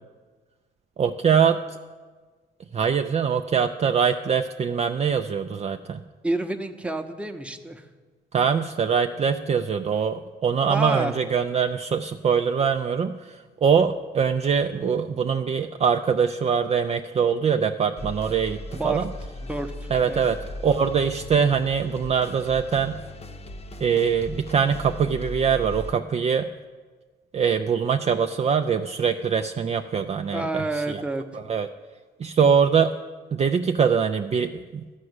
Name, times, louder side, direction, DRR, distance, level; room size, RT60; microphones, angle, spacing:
voice 1, 1.0-1.8 2.7-6.0 8.3-19.0 19.9-23.0 23.8-26.5 27.3-31.0 31.3-31.7 32.2-33.0 33.3-34.8, right 6 dB, 35° right, 6 dB, 0.4 m, -23 dB
voice 2, 6.2-7.8 10.7-11.2 18.7-19.0 19.4-20.3 30.3-31.2, right 2 dB, 5° right, 6 dB, 0.8 m, -29 dB
sound 1, 18.0-25.9, left 2 dB, 30° left, 0.8 m, -38 dB
13.5 x 4.8 x 8.0 m, 1.4 s
cardioid pair, 90°, 20 cm